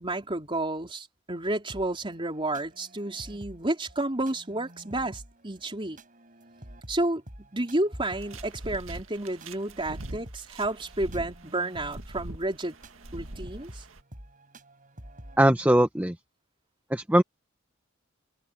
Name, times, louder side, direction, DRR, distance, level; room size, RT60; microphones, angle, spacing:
voice 1, 0.0-6.0 6.9-7.2 7.5-12.8 13.1-13.8, right 2 dB, 25° right, 4.0 m, -31 dB
sound 1, 1.7-15.4, right 1 dB, 40° right, 7.6 m, -49 dB
sound 2, 8.0-14.0, right 1 dB, 85° right, 2.0 m, -43 dB
voice 2, 15.4-16.2 16.9-17.2, right 1 dB, 10° right, 1.0 m, -20 dB
head